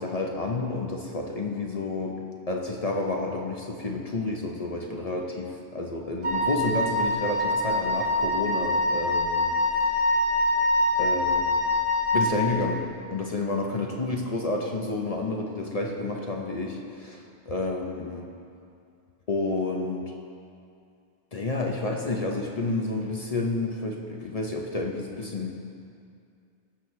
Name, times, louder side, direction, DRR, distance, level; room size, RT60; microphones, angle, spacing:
voice 1, 0.0-2.2 2.5-10.1 11.0-11.6 12.1-18.3 19.3-20.1 21.3-25.5, left 2 dB, 40° left, 0 dB, 0.7 m, -30 dB
Wind instrument woodwind instrument, 6.2-12.3, left 1 dB, 55° right, 1.8 m, -24 dB
16.0 x 6.3 x 3.2 m, 2.4 s
omnidirectional pair, 1.1 m